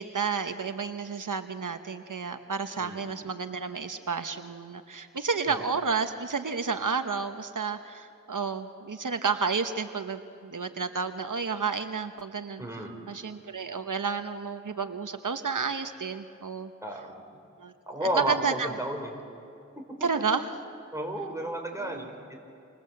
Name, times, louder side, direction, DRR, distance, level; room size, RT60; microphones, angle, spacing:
voice 1, 0.0-16.7 17.6-17.7 18.1-18.8 20.0-20.5 21.8-22.1, right 5 dB, 85° right, 8 dB, 1.0 m, -31 dB
voice 2, 2.8-3.2 5.5-5.6 12.6-13.0 16.8-17.2 17.9-19.1 20.9-22.4, right 1 dB, 10° right, 1 dB, 5.4 m, -32 dB
28.5 x 26.5 x 7.8 m, 2.6 s
wide cardioid pair, 45°, 31 cm